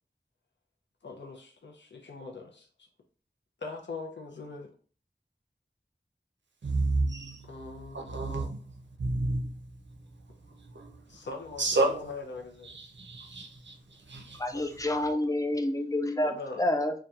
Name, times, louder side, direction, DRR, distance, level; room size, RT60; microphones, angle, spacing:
voice 1, 1.0-2.9 3.6-4.7 7.4-8.5 11.1-12.7 14.5-14.6 16.2-16.6, left 3 dB, 75° left, 0.5 m, -42 dB
voice 2, 6.6-7.5 7.9-9.6 10.6-11.2 11.6-12.1 12.6-14.4, right 2 dB, 80° right, 0.5 m, -31 dB
voice 3, 14.3-16.9, left 1 dB, 20° left, 0.4 m, -28 dB
2.8 x 2.2 x 2.3 m
wide cardioid pair, 45°, 19 cm